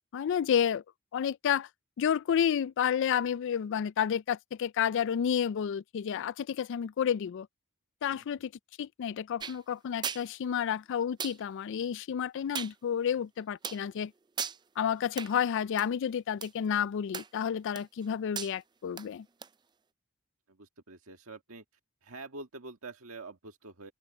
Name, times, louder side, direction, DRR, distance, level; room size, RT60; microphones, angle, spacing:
voice 1, 0.1-0.8 1.1-1.7 2.0-7.5 8.0-8.5 8.8-14.1 14.8-19.3, left 8 dB, 60° left, 0.3 m, -30 dB
voice 2, 8.1-8.4 20.5-21.6 22.0-23.9, right 3 dB, 80° right, 1.8 m, -46 dB
sound 1, 9.4-9.6 10.0-10.2 11.2-11.4 12.5-12.7 13.6-13.8 14.4-14.6 15.2-15.3 15.8-15.9 16.4-16.5 17.1-17.4 17.7-18.0 18.3-18.5 19.0-19.1 19.4-19.5, right 7 dB, 20° right, 0.4 m, -36 dB
open air
head